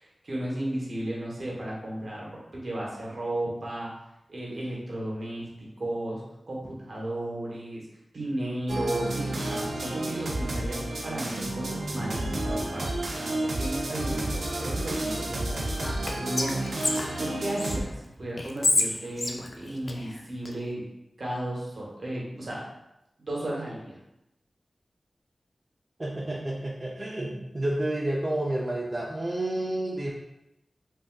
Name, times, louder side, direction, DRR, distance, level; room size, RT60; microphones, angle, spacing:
voice 1, 0.0-3.9 4.3-6.2 6.5-7.8 8.1-15.8 16.2-16.7 17.2-20.8 21.2-22.6 23.2-24.0, right 1 dB, 60° right, -4 dB, 0.9 m, -34 dB
sound 1, 8.7-17.8, right 1 dB, 90° right, 0.5 m, -31 dB
Whispering, 15.8-17.8 18.4-20.5, left 2 dB, 50° left, 0.4 m, -29 dB
voice 2, 26.0-30.1, right 1 dB, 30° right, -4 dB, 0.4 m, -30 dB
3.5 x 2.5 x 2.2 m, 0.88 s
wide cardioid pair, 60°, 0 cm